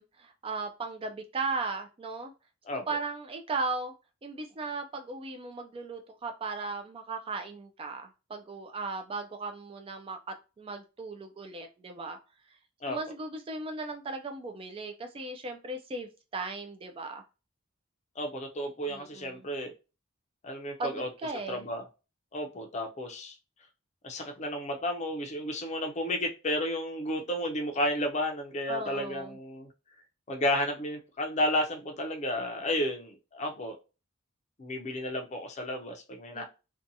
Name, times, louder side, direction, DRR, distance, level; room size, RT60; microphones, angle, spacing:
voice 1, 0.0-2.3 2.7-3.9 4.2-12.2 12.8-17.2 18.9-19.5 20.8-21.6 28.7-29.4 36.3-36.4, right 3 dB, 25° right, 6 dB, 0.3 m, -37 dB
voice 2, 18.2-19.7 20.4-21.1 21.5-21.8 22.3-23.4 24.0-29.7 30.3-33.8 34.6-36.4, left 1 dB, 35° left, 4 dB, 0.5 m, -32 dB
2.7 x 2.2 x 2.6 m, 0.31 s
head